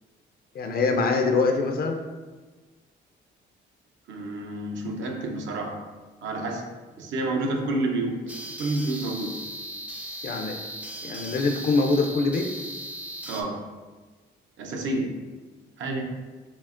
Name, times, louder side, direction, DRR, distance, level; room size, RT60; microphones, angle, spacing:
voice 1, 0.5-2.0 10.2-10.6 11.0-12.5, left 3 dB, 50° left, 4 dB, 0.5 m, -24 dB
voice 2, 4.1-5.8 6.2-8.3 8.6-9.4 13.3-13.6 14.6-15.2 15.8-16.0, right 2 dB, 70° right, 2 dB, 0.7 m, -29 dB
sound 1, 8.3-13.4, right 1 dB, 5° right, 0.4 m, -37 dB
5.8 x 2.1 x 2.5 m, 1.3 s
cardioid pair, 90°, 20 cm